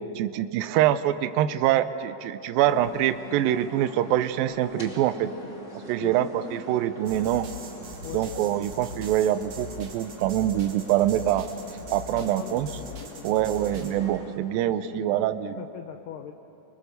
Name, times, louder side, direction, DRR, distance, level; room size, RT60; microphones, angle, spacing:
voice 1, 0.2-5.3 5.9-7.5 8.1-11.5 11.9-12.7 13.2-15.6, right 12 dB, 80° right, 11 dB, 2.2 m, -25 dB
sound 1, 2.6-14.4, left 1 dB, 25° left, 2.1 m, -44 dB
voice 2, 6.0-6.3 8.0-8.3 12.2-13.5 14.6-15.3 15.6-16.3, left 10 dB, 80° left, 6 dB, 2.0 m, -41 dB
sound 2, 7.1-14.1, left 2 dB, 50° right, 3.0 m, -41 dB
25.5 x 22.0 x 6.8 m, 2.9 s
omnidirectional pair, 4.7 m